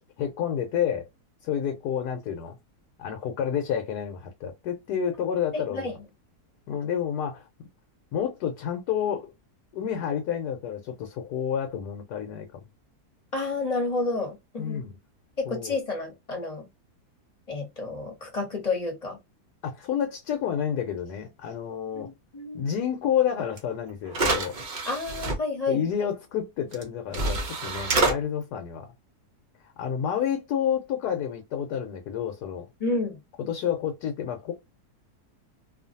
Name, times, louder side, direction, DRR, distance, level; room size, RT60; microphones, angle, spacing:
voice 1, 0.2-1.1 1.4-2.6 3.0-5.9 6.7-7.5 8.1-9.3 9.7-12.6 14.6-14.9 15.5-15.7 19.6-22.1 22.5-24.6 25.7-28.9 29.8-32.7 33.4-34.5, left 8 dB, 80° left, 1.2 m, -29 dB
voice 2, 5.5-5.9 13.3-14.8 15.4-16.7 17.5-19.2 21.9-22.7 24.8-25.8 32.8-33.2, left 3 dB, 25° left, 1.0 m, -30 dB
sound 1, 23.6-23.7 24.1-25.4 26.7-26.8 27.1-28.1, right 2 dB, 50° right, 0.5 m, -26 dB
2.7 x 2.5 x 2.6 m
omnidirectional pair, 1.7 m